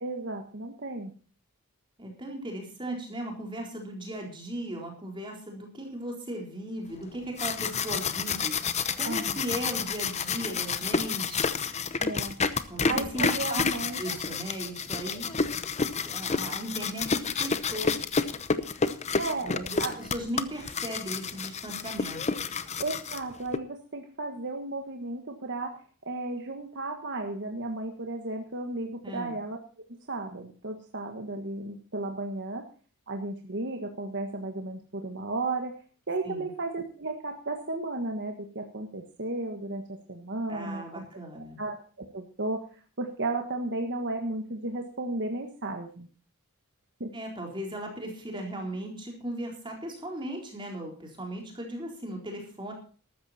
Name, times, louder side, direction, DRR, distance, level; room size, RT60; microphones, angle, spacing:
voice 1, 0.0-1.1 9.0-9.4 12.0-12.3 12.8-14.0 19.2-20.0 22.8-29.6 30.1-32.7 33.1-35.7 36.1-41.1 41.4-42.6 43.0-46.1 47.0-47.1, right 2 dB, 55° right, 3 dB, 1.6 m, -34 dB
voice 2, 2.0-11.6 12.7-13.6 14.0-15.3 16.0-18.0 19.4-22.2 29.0-29.4 36.2-36.5 40.5-41.6 47.1-52.7, right 1 dB, 20° right, 1 dB, 4.0 m, -37 dB
sound 1, 7.1-23.6, left 5 dB, 30° left, 0.8 m, -30 dB
14.0 x 12.5 x 4.3 m, 0.39 s
head